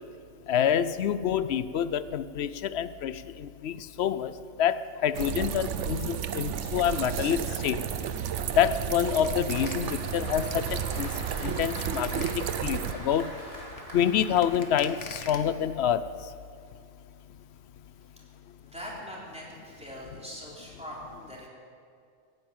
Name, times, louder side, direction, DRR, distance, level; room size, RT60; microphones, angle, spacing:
voice 1, 0.5-4.3 4.6-7.8 8.6-11.1 11.4-13.3 13.9-16.0, left 9 dB, 70° left, 14 dB, 0.8 m, -27 dB
sound 1, 5.1-12.9, right 8 dB, 80° right, 1.1 m, -32 dB
sound 2, 7.3-15.4, left 4 dB, 90° left, 1.6 m, -45 dB
Applause, 8.4-15.6, equal, 30° right, 2.9 m, -44 dB
voice 2, 18.6-21.5, equal, 5° right, -5 dB, 3.6 m, -42 dB
16.5 x 9.5 x 8.9 m, 2.3 s
omnidirectional pair, 1.2 m